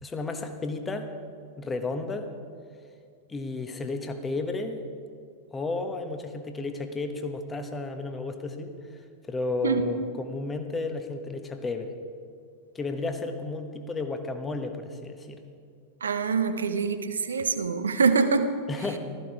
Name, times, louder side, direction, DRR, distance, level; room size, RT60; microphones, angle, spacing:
voice 1, 0.0-1.1 1.6-2.3 3.3-4.8 5.5-8.7 9.3-11.9 12.7-15.4 18.7-19.0, left 3 dB, 15° left, 6 dB, 1.3 m, -32 dB
voice 2, 16.0-18.5, right 5 dB, 70° right, 9 dB, 1.0 m, -24 dB
16.0 x 14.0 x 4.9 m, 2.3 s
figure-of-eight pair, 90°, 0 cm